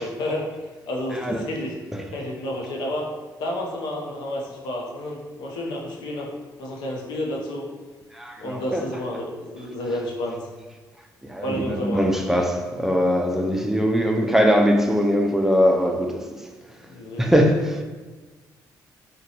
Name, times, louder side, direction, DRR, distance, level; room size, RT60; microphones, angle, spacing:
voice 1, 0.0-1.7 2.1-3.1 3.4-6.3 6.6-7.6 8.4-10.5 11.4-12.0 16.8-17.3, left 1 dB, 90° left, 0.6 m, -30 dB
voice 2, 8.1-8.8 11.3-16.2 17.2-17.8, equal, 5° right, 0.3 m, -21 dB
3.8 x 2.2 x 2.8 m
cardioid pair, 85°, 7 cm